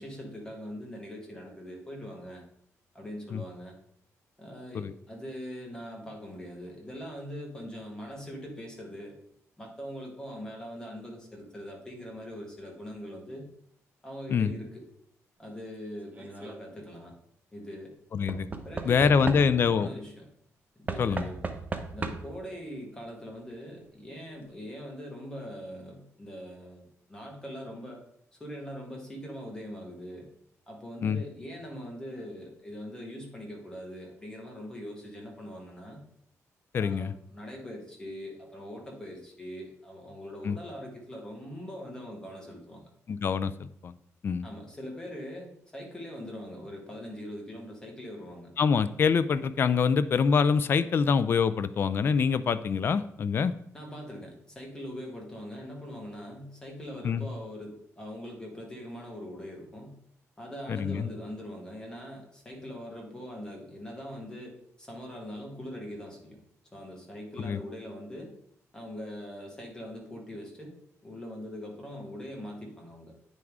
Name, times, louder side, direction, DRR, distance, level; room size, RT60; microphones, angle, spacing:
voice 1, 0.0-2.4 2.9-3.8 4.4-9.2 9.6-13.5 14.0-14.8 15.4-17.1 17.5-17.9 18.6-20.3 20.8-21.4 21.9-28.0 28.4-30.3 30.7-36.0 36.8-42.9 44.4-48.5 53.7-60.0 60.4-66.4 66.7-68.3 68.7-70.8 71.0-73.1, equal, 15° left, -1 dB, 1.8 m, -42 dB
Knock / Wood, 16.1-16.6 18.3-19.8 20.9-22.5 23.5-23.6 23.8-23.9, right 4 dB, 25° right, 0.7 m, -36 dB
voice 2, 18.1-18.5 18.9-19.9 21.0-21.3 31.0-31.2 36.7-37.1 40.4-40.6 43.1-43.9 44.2-44.5 48.6-53.5 57.0-57.2 60.7-61.1 67.4-67.6, left 6 dB, 40° left, 13 dB, 0.3 m, -25 dB
9.2 x 3.6 x 4.7 m, 0.69 s
cardioid pair, 135°, 6 cm